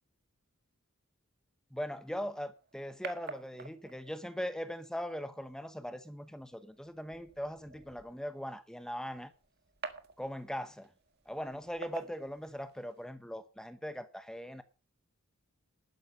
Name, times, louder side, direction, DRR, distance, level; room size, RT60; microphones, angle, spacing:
voice 1, 1.7-9.3 10.2-10.9 11.3-14.6, equal, 5° left, 0.9 m, -40 dB
sound 1, 2.1-13.1, right 4 dB, 50° right, 1.6 m, -51 dB
12.0 x 10.5 x 5.5 m
head